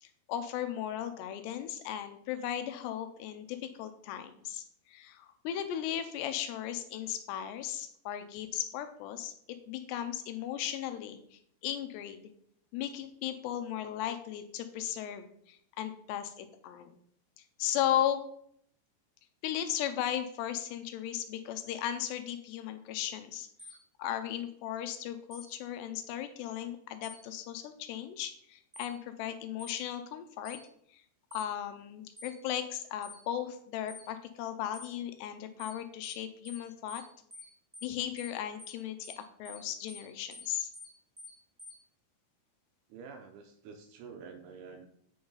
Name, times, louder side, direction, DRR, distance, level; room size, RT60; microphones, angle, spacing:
voice 1, 0.0-9.3 9.7-12.2 12.7-16.9 17.6-18.2 19.4-23.5 24.0-30.6 30.9-31.0 31.3-37.0 37.8-40.7, left 10 dB, 80° left, 9 dB, 2.7 m, -36 dB
sound 1, 23.6-23.8 25.3-25.5 27.0-27.2 28.7-28.9 29.6-29.8 30.4-30.6 31.3-31.5 32.2-32.3 33.0-33.2 33.9-34.0 34.7-34.9 35.6-35.8 36.0-36.2 36.4-36.6 36.9-37.0 37.3-37.5 37.7-37.9 38.2-38.3 38.6-38.8 39.0-39.2 39.4-39.6 39.9-40.0 40.3-40.5 40.7-40.9 41.2-41.3 41.6-41.7, left 1 dB, 10° right, 1.9 m, -49 dB
voice 2, 42.9-44.9, right 5 dB, 75° right, 5 dB, 2.5 m, -48 dB
8.7 x 5.4 x 3.9 m, 0.67 s
omnidirectional pair, 5.1 m